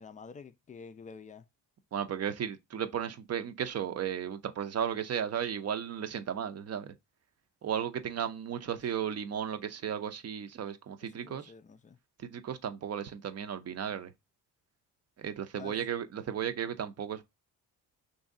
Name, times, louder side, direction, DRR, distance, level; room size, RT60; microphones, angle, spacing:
voice 1, 0.0-1.5 11.0-12.0 15.6-15.8, left 5 dB, 20° left, 0.4 m, -49 dB
voice 2, 1.9-6.9 7.6-11.5 12.2-14.1 15.2-17.2, right 8 dB, 40° right, 0.6 m, -35 dB
3.1 x 2.7 x 3.7 m
supercardioid pair, 65°, 39 cm